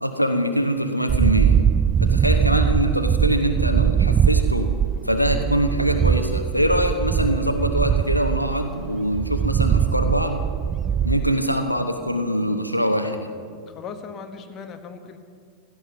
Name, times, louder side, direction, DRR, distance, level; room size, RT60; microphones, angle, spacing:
voice 1, 0.0-1.6 2.0-4.7 5.0-10.4 11.0-13.3, equal, 90° left, 6 dB, 1.1 m, -23 dB
sound 1, 1.1-11.3, right 8 dB, 25° right, 0.4 m, -21 dB
sound 2, 2.7-14.6, left 2 dB, 50° right, 4.4 m, -46 dB
voice 2, 13.7-15.2, left 5 dB, 30° left, 6 dB, 1.4 m, -38 dB
16.0 x 13.0 x 6.0 m, 2.1 s
figure-of-eight pair, 90°, 0 cm